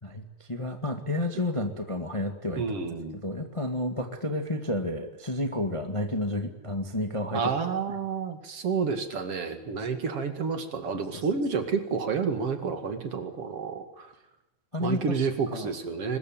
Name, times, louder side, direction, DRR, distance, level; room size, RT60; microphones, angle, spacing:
voice 1, 0.0-2.6 3.1-7.4 14.7-15.7, left 1 dB, 15° left, 6 dB, 1.6 m, -31 dB
voice 2, 2.6-3.2 7.3-14.1 14.8-16.2, right 5 dB, 55° right, 8 dB, 3.0 m, -30 dB
22.5 x 21.0 x 9.0 m, 0.87 s
omnidirectional pair, 3.3 m